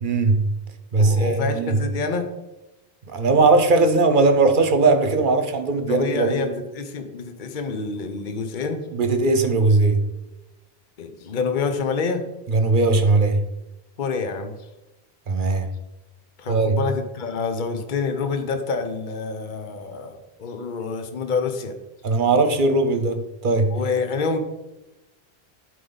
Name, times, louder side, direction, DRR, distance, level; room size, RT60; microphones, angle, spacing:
voice 1, 0.0-0.5 0.9-1.8 3.1-6.5 8.9-10.0 12.5-13.4 15.3-15.7 16.5-16.8 22.0-23.8, right 3 dB, 55° right, 8 dB, 1.0 m, -19 dB
voice 2, 1.0-2.3 5.9-6.5 6.7-8.9 11.0-12.2 14.0-14.6 16.4-21.7 23.7-24.4, left 4 dB, 50° left, 6 dB, 0.9 m, -27 dB
11.5 x 5.1 x 3.9 m, 0.99 s
omnidirectional pair, 1.1 m